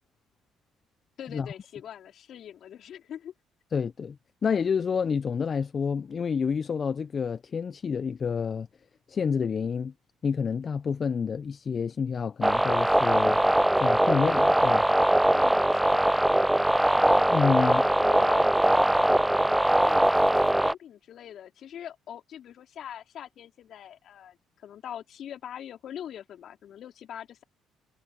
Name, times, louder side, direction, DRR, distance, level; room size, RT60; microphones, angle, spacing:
voice 1, 1.2-3.3 15.3-16.4 17.6-24.4 24.6-27.4, left 10 dB, 65° left, 3.6 m, -43 dB
voice 2, 3.7-4.2 4.4-8.7 9.1-9.9 10.2-13.4 13.8-14.8 17.3-17.8, left 6 dB, 45° left, 0.8 m, -28 dB
sound 1, 12.4-20.7, right 1 dB, 5° right, 0.5 m, -22 dB
supercardioid pair, 70°, 0 cm